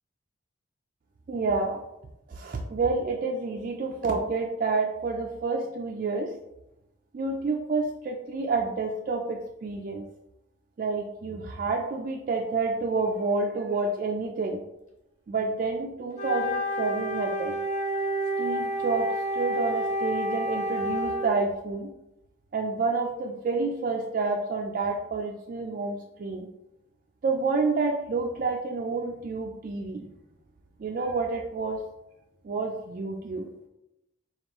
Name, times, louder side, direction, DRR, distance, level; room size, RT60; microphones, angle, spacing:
voice 1, 1.3-1.8 2.3-6.3 7.1-10.1 10.8-14.6 15.3-17.6 18.4-19.1 19.3-21.9 22.5-26.5 27.2-30.1 30.8-31.8 32.4-33.5, right 3 dB, 45° right, 1 dB, 0.3 m, -29 dB
Wind instrument woodwind instrument, 16.1-21.3, equal, 40° left, 0.9 m, -29 dB
5.2 x 2.3 x 2.9 m, 0.90 s
head